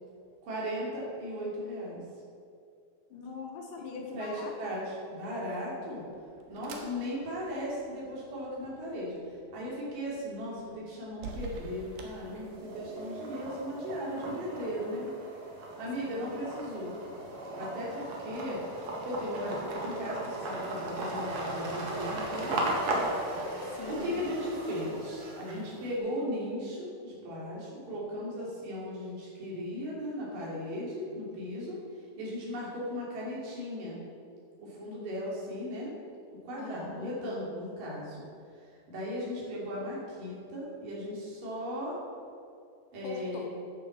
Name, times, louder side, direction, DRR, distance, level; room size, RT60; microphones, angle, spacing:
voice 1, 0.4-2.0 4.1-6.0 6.5-15.1 15.8-16.9 17.5-18.6 19.1-22.8 23.3-23.4 23.9-31.8 32.2-34.0 34.6-35.9 36.4-38.2 38.9-42.0 42.9-43.5, equal, 70° right, -5 dB, 4.6 m, -37 dB
voice 2, 3.1-4.8 16.0-16.3 23.6-24.2 36.6-37.1 43.0-43.5, left 4 dB, 70° left, 0 dB, 3.0 m, -42 dB
sound 1, 5.7-13.0, right 3 dB, 90° right, 3.1 m, -49 dB
sound 2, 11.3-12.0 12.4-25.9, right 1 dB, 55° right, 2.8 m, -36 dB
10.0 x 9.9 x 7.3 m, 2.4 s
omnidirectional pair, 4.0 m